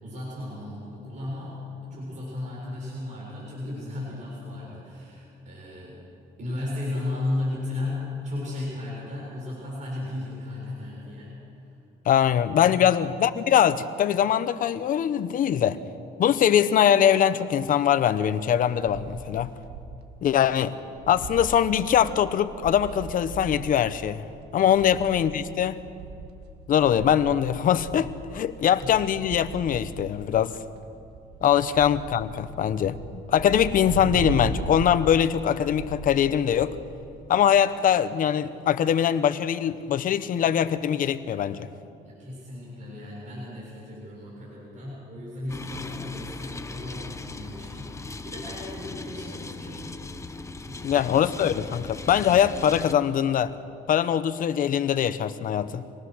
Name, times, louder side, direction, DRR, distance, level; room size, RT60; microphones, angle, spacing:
voice 1, 0.0-6.0 6.4-11.8 12.7-13.0 24.7-25.0 28.7-28.9 42.0-51.0, left 2 dB, 45° right, -5 dB, 7.5 m, -35 dB
voice 2, 12.0-15.8 16.2-19.5 20.2-20.7 21.1-24.2 24.5-25.8 26.7-30.6 31.4-33.0 33.3-36.7 37.3-41.7 50.8-53.5 53.9-55.8, left 9 dB, 55° left, 13 dB, 1.0 m, -22 dB
sound 1, 18.1-20.1 20.4-20.5 20.8-37.1, right 4 dB, 75° right, 1.8 m, -38 dB
sound 2, 45.5-52.9, left 3 dB, 15° left, 1.1 m, -38 dB
26.0 x 19.0 x 6.4 m, 2.5 s
cardioid pair, 110°, 17 cm